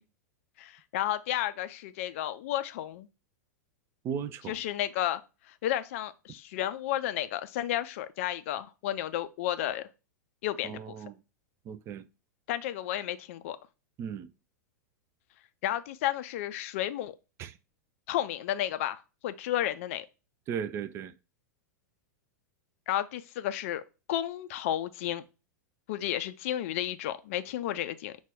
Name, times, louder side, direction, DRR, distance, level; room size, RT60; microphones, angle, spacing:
voice 1, 0.6-3.1 4.5-5.2 5.5-9.9 10.4-10.9 12.5-13.6 15.6-17.2 18.1-20.1 22.9-23.8 24.1-25.2 25.9-28.2, left 12 dB, 45° left, 0.4 m, -32 dB
voice 2, 4.0-4.6 10.6-11.2 11.6-12.1 14.0-14.3 17.4-17.6 20.5-21.1, right 7 dB, 25° right, 0.4 m, -36 dB
5.6 x 2.3 x 3.4 m
figure-of-eight pair, 95°, 10 cm